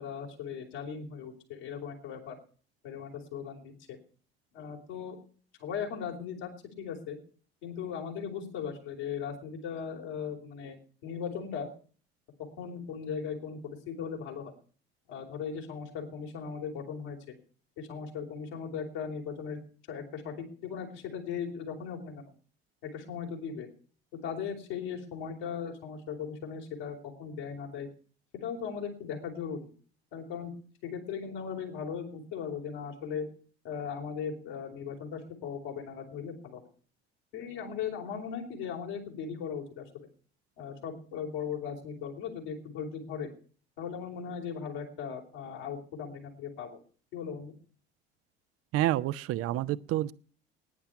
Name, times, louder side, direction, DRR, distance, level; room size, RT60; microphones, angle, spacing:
voice 1, 0.0-2.4 2.8-4.0 4.5-5.2 5.6-6.5 6.8-7.2 7.6-11.7 12.6-14.5 15.1-17.2 17.8-19.6 19.9-22.3 22.8-23.7 24.2-27.9 28.4-29.6 30.1-30.5 30.8-33.3 33.6-36.6 37.3-39.9 40.6-43.3 43.8-46.8 47.1-47.6, left 7 dB, 65° left, 1 dB, 4.2 m, -38 dB
voice 2, 48.7-50.1, right 14 dB, 45° right, 18 dB, 0.7 m, -28 dB
17.5 x 10.0 x 5.9 m, 0.43 s
figure-of-eight pair, 60°, 33 cm